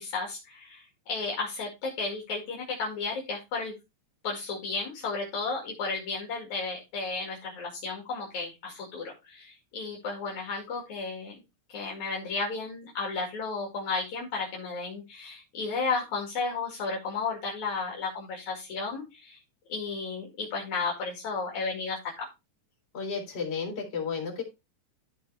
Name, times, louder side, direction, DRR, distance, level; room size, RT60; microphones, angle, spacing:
voice 1, 0.0-3.7 4.2-11.4 11.7-19.4 19.7-22.3, left 4 dB, 70° left, -2 dB, 3.6 m, -33 dB
voice 2, 22.9-24.4, left 5 dB, 50° left, -1 dB, 4.6 m, -32 dB
14.0 x 4.6 x 3.3 m, 0.25 s
omnidirectional pair, 3.4 m